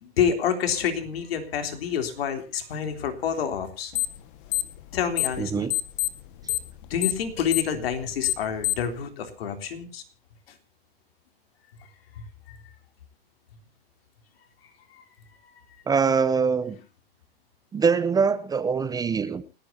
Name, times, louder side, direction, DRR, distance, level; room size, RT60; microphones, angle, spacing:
voice 1, 0.0-3.9 4.9-5.7 6.5-6.6 6.9-10.0 12.1-12.6 14.9-15.0, left 8 dB, 80° left, 3.5 m, -28 dB
sound 1, 3.9-4.2 4.5-5.4 5.7-8.9, left 20 dB, 55° left, 1.7 m, -26 dB
voice 2, 5.4-5.7 15.9-16.8 17.7-19.4, right 5 dB, 15° right, 0.8 m, -23 dB
29.0 x 9.8 x 2.8 m
supercardioid pair, 140°, 30 cm